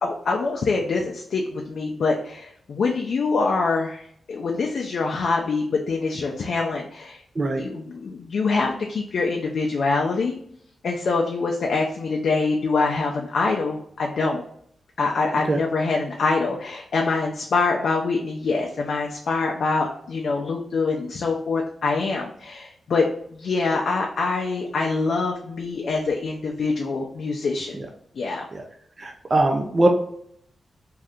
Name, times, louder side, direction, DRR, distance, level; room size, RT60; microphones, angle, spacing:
voice 1, 0.0-7.2 7.6-10.3 10.8-14.4 15.0-27.8 28.2-28.5, left 4 dB, 70° left, 0 dB, 0.4 m, -25 dB
voice 2, 29.0-29.9, right 2 dB, 35° right, 2 dB, 0.4 m, -21 dB
2.7 x 2.4 x 3.4 m, 0.67 s
wide cardioid pair, 105°, 0 cm